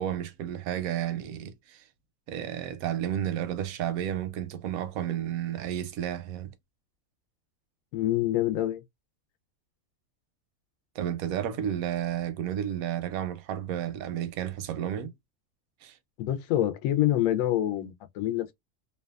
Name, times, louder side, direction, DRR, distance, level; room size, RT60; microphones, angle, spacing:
voice 1, 0.0-1.8 2.3-6.5 10.9-15.1 15.8-16.0, right 10 dB, 85° right, 1.0 m, -32 dB
voice 2, 7.9-8.8 16.2-18.5, left 13 dB, 75° left, 1.0 m, -26 dB
2.7 x 2.3 x 2.2 m
omnidirectional pair, 1.4 m